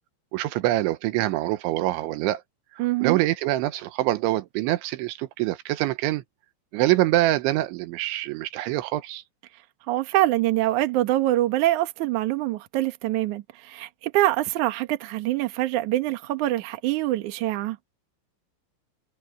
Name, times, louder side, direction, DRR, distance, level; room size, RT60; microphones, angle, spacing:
voice 1, 0.3-2.4 3.0-6.2 6.7-9.2, right 16 dB, 85° right, 3.4 m, -25 dB
voice 2, 2.8-3.2 9.9-17.8, right 15 dB, 65° right, 2.0 m, -24 dB
omnidirectional pair, 5.4 m